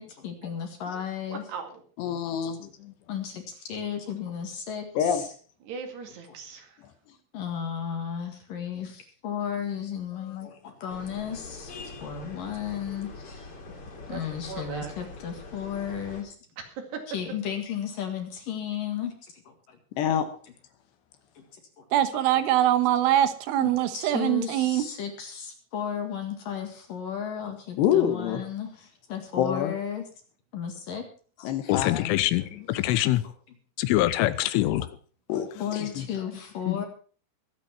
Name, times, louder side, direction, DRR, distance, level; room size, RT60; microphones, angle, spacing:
voice 1, 0.0-1.4 3.1-5.3 6.3-6.4 7.3-13.5 14.1-16.3 17.1-19.8 21.8-21.9 23.6-30.0 30.5-31.0 31.4-31.5 35.6-36.9, left 8 dB, 55° left, 3.1 m, -34 dB
voice 2, 1.3-1.8 5.7-6.8 13.9-14.2 14.5-14.9 16.7-16.8 32.4-32.5, right 5 dB, 60° right, 4.1 m, -39 dB
voice 3, 2.0-2.9 5.0-5.2 10.4-10.5 20.0-20.3 27.8-28.4 29.4-29.7 31.4-32.2 32.5-32.6 33.9-34.1 35.3-36.0 36.7-36.9, left 9 dB, 70° left, 3.0 m, -27 dB
sound 1, 10.9-16.2, left 3 dB, 35° left, 2.9 m, -43 dB
voice 4, 21.9-24.9, right 12 dB, 80° right, 3.6 m, -23 dB
voice 5, 31.7-33.2 33.8-34.9, left 15 dB, 90° left, 3.4 m, -24 dB
22.5 x 8.4 x 4.5 m
omnidirectional pair, 5.6 m